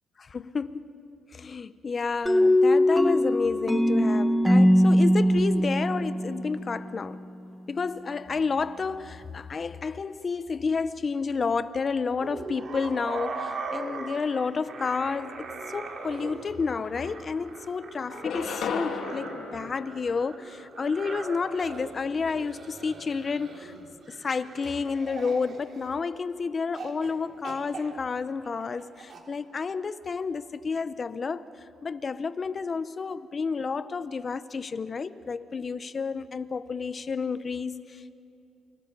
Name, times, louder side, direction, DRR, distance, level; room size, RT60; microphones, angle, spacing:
voice 1, 0.2-0.9 1.3-7.2 7.7-23.7 24.1-38.1, left 5 dB, 40° left, 0.9 m, -30 dB
sound 1, 2.3-6.9, equal, ahead, 1.4 m, -21 dB
sound 2, 12.2-26.2 26.7-27.1 27.4-29.2, right 4 dB, 50° right, 3.5 m, -40 dB
sound 3, 16.4-16.5 16.8-17.6 18.1-20.7, left 5 dB, 75° left, 2.4 m, -35 dB
29.0 x 24.0 x 5.5 m
cardioid pair, 90°, 0 cm